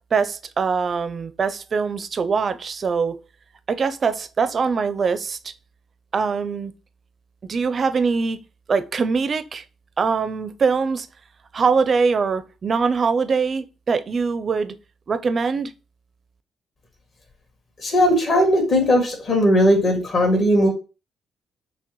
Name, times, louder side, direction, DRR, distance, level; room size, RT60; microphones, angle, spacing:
voice 1, 0.1-3.2 3.7-5.5 6.1-6.7 7.5-8.4 8.7-9.6 10.0-11.1 11.5-14.7 15.1-15.7, right 5 dB, 45° right, 0.4 m, -22 dB
voice 2, 17.8-20.7, equal, 50° left, 1.9 m, -18 dB
5.9 x 2.1 x 3.0 m
cardioid pair, 90°, 0 cm